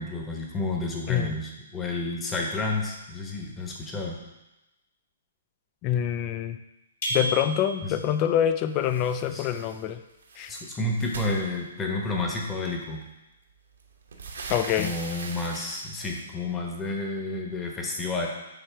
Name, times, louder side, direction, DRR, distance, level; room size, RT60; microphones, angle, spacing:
voice 1, 0.0-4.2 7.8-8.0 9.3-9.5 10.5-13.0 14.8-18.3, left 2 dB, 15° left, 0 dB, 1.2 m, -30 dB
voice 2, 5.8-6.6 7.1-10.0 10.4-10.5 14.5-14.9, left 10 dB, 35° left, 11 dB, 0.4 m, -26 dB
sound 1, 7.0-8.1, right 1 dB, 60° left, 2.2 m, -31 dB
sound 2, 8.8-9.8 10.1-12.1 13.0-13.1 13.5-16.2, right 4 dB, 75° right, 1.1 m, -41 dB
7.9 x 3.3 x 4.7 m, 0.97 s
hypercardioid pair, 130°, 0 cm